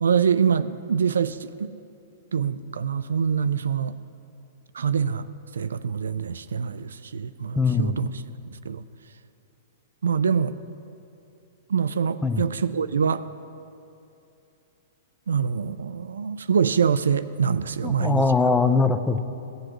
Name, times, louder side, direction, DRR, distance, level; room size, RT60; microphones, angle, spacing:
voice 1, 0.0-1.7 2.3-3.9 4.7-5.3 5.5-8.2 8.6-8.8 10.0-10.5 11.7-13.2 15.3-18.3, right 6 dB, 85° right, 14 dB, 0.3 m, -24 dB
voice 2, 7.6-8.0 12.2-12.4 17.8-19.2, left 4 dB, 10° left, 9 dB, 0.5 m, -21 dB
16.0 x 7.8 x 3.0 m, 2.7 s
hypercardioid pair, 125°, 0 cm